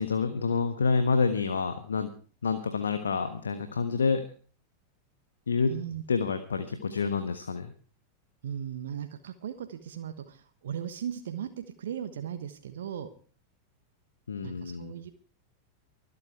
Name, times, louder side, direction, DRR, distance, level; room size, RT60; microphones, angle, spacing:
voice 1, 0.0-2.1 2.4-4.2 5.5-5.7 6.1-7.7 14.3-14.9, left 5 dB, 70° left, 9 dB, 1.3 m, -28 dB
voice 2, 5.7-6.0 8.4-13.1 14.4-15.1, right 9 dB, 60° right, 8 dB, 1.3 m, -37 dB
24.0 x 8.5 x 4.7 m, 0.41 s
figure-of-eight pair, 90°, 0 cm